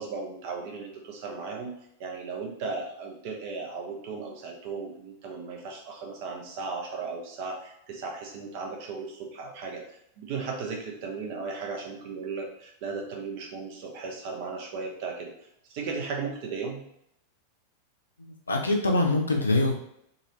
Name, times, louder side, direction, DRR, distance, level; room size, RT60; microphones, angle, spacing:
voice 1, 0.0-1.7 2.0-9.8 10.2-15.3 15.7-16.8, right 4 dB, 45° right, 1 dB, 0.9 m, -36 dB
voice 2, 18.2-19.7, left 2 dB, 75° left, 2 dB, 0.6 m, -24 dB
3.9 x 2.6 x 3.0 m, 0.76 s
figure-of-eight pair, 90°, 0 cm